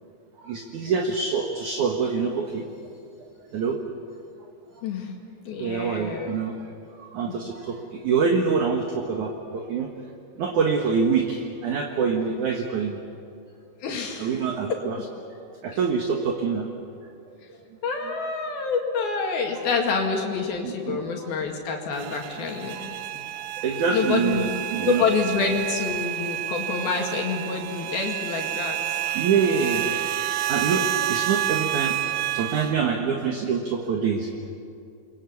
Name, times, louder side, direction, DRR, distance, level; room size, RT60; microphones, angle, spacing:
voice 1, 0.4-2.6 3.5-3.8 5.6-6.5 7.0-9.9 10.4-13.0 14.2-15.0 15.6-16.7 20.6-21.3 21.7-21.8 22.7-22.9 23.6-25.1 29.0-29.9 30.4-32.0 32.3-34.3, right 5 dB, 60° right, 2 dB, 2.7 m, -25 dB
voice 2, 4.8-5.1 5.5-6.3 7.3-7.4 13.8-14.3 17.8-23.2 23.9-24.5 24.8-28.8, left 5 dB, 70° left, 1 dB, 4.1 m, -27 dB
sound 1, 21.9-32.7, right 14 dB, 85° right, 1.7 m, -29 dB
29.5 x 22.5 x 8.5 m, 2.5 s
omnidirectional pair, 4.5 m